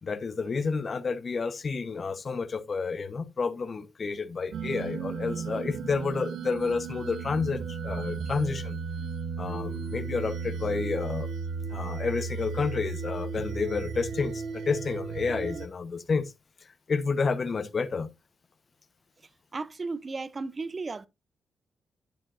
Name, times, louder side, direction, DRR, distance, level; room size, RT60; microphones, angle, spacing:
voice 1, 0.0-8.8 9.4-11.3 11.7-16.2 16.9-18.1, left 4 dB, 45° left, 1.0 m, -30 dB
sound 1, 4.5-15.7, right 5 dB, 75° right, 0.8 m, -35 dB
voice 2, 19.5-21.1, right 3 dB, 35° right, 0.6 m, -34 dB
10.5 x 8.9 x 2.6 m
cardioid pair, 75°, 0 cm